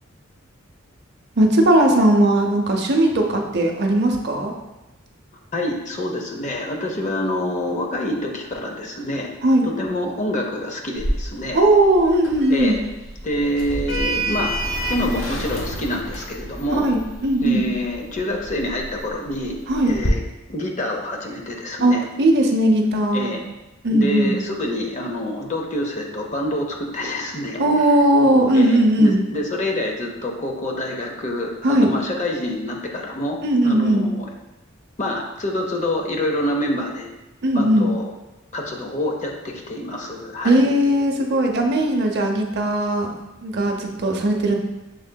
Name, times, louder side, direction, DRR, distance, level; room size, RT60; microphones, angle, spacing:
voice 1, 1.4-4.5 9.4-9.7 11.5-12.8 16.7-17.6 19.7-19.9 21.8-23.4 23.8-24.4 27.6-29.2 31.6-31.9 33.4-34.1 37.4-37.9 40.4-43.1 43.4-44.6, right 1 dB, 55° right, 2 dB, 0.6 m, -18 dB
voice 2, 5.5-9.3 9.6-11.6 12.5-12.8 13.2-14.6 14.9-16.9 17.4-19.6 19.9-20.2 20.5-22.0 23.1-23.4 23.9-27.9 28.5-34.3 35.0-37.1 37.5-38.1 38.5-40.6, left 1 dB, 35° left, 1 dB, 0.6 m, -26 dB
Sliding door, 11.0-20.1, right 1 dB, 70° left, 0.9 m, -30 dB
6.4 x 3.6 x 2.2 m, 1.0 s
head